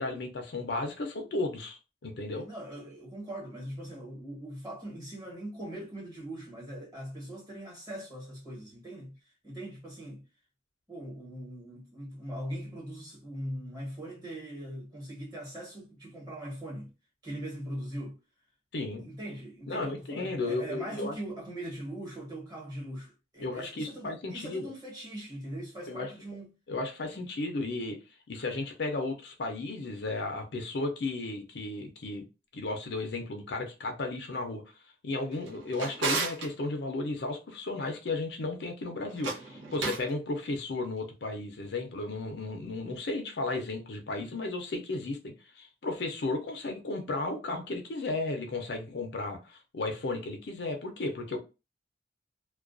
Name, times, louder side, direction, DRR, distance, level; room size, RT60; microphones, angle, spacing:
voice 1, 0.0-2.5 18.7-19.1 19.7-21.2 23.4-24.7 25.9-26.1 26.7-28.0 28.3-32.3 32.5-34.6 35.0-51.4, left 2 dB, 65° left, 0.5 m, -34 dB
voice 2, 2.3-10.2 10.9-16.9 17.2-18.2 19.0-26.5 27.1-27.2, right 1 dB, 20° right, 1.2 m, -41 dB
Drawer open or close, 35.3-36.5 39.1-40.1, right 4 dB, 85° right, 0.7 m, -33 dB
2.3 x 2.2 x 2.5 m
head